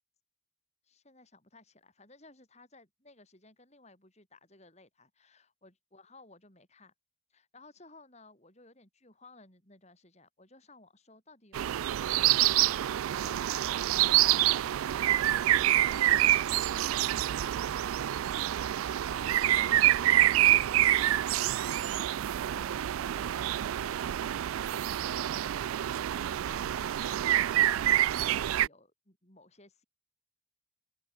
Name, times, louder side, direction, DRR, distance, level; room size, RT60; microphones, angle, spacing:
voice 1, 0.8-6.9 7.3-13.4 13.9-24.1 24.7-25.4 26.2-29.8, left 3 dB, 30° left, 5.5 m, -57 dB
sound 1, 11.5-28.7, right 13 dB, 85° right, 0.3 m, -27 dB
open air
head